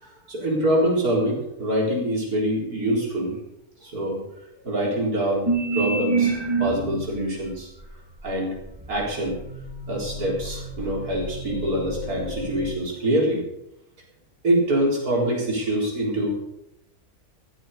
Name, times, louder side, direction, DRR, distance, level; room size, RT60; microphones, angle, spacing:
voice 1, 0.0-3.4 3.8-4.2 4.6-6.3 6.6-7.7 8.2-8.6 8.9-9.4 9.9-13.4 14.4-16.4, right 1 dB, 75° right, -2 dB, 4.7 m, -25 dB
sound 1, 5.5-7.1 7.8-12.7, right 3 dB, 15° right, 1.4 m, -28 dB
14.5 x 9.3 x 6.8 m, 0.80 s
omnidirectional pair, 1.6 m